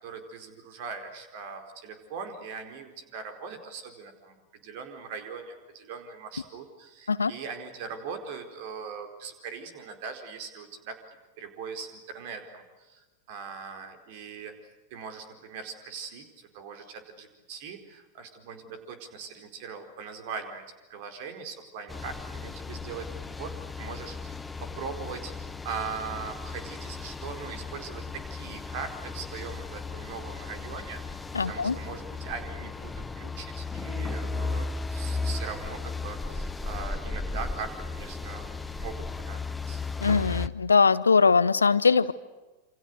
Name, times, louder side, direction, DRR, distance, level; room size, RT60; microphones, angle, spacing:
voice 1, 0.0-14.5 14.9-20.6 20.9-25.3 25.6-31.0 31.4-39.8, right 5 dB, 50° right, 6 dB, 4.5 m, -40 dB
sound 1, 21.9-40.5, left 3 dB, 10° left, 1.0 m, -36 dB
voice 2, 31.3-31.8 40.0-42.1, left 5 dB, 75° left, 17 dB, 0.9 m, -21 dB
28.5 x 27.0 x 6.6 m, 1.2 s
figure-of-eight pair, 90°, 0 cm